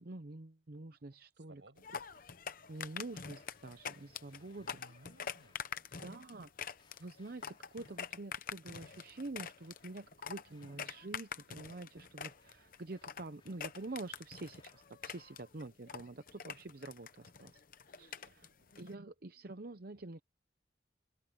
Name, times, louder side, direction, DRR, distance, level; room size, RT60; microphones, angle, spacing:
voice 1, 0.0-1.6 2.7-4.7 6.0-6.5 7.0-18.5 18.8-20.2, right 2 dB, 50° right, 0.8 m, -47 dB
voice 2, 1.3-1.9 4.6-6.2 10.4-10.8 18.2-19.1, right 1 dB, 80° right, 6.2 m, -63 dB
sound 1, 1.8-18.9, left 7 dB, 50° left, 0.8 m, -46 dB
sound 2, 2.1-5.8 6.8-8.2 8.7-10.9 11.7-15.5, left 3 dB, 25° left, 3.5 m, -71 dB
head